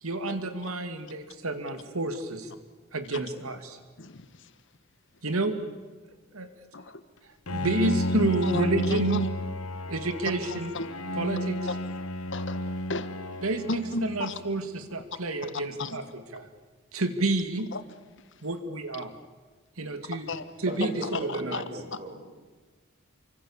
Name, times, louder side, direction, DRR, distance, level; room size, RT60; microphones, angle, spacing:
voice 1, 0.0-2.5 2.9-3.8 5.2-5.6 6.3-6.5 7.5-9.2 9.9-10.7 11.2-11.6 13.4-16.5 16.9-17.7 18.4-19.1 19.8-20.3 20.6-21.6, right 2 dB, 85° right, 8 dB, 2.2 m, -29 dB
voice 2, 4.0-4.5 6.7-7.0 8.4-9.3 10.4-10.9 11.7-11.8 12.3-13.4 13.7-14.4 15.8-16.0 17.7-17.8 20.1-20.4 21.0-21.6, left 3 dB, 60° left, 11 dB, 1.5 m, -35 dB
Bowed string instrument, 7.5-14.6, left 1 dB, 90° left, 1.3 m, -32 dB
voice 3, 20.7-22.2, right 1 dB, 35° right, 3 dB, 5.9 m, -37 dB
29.0 x 25.0 x 7.3 m, 1.4 s
head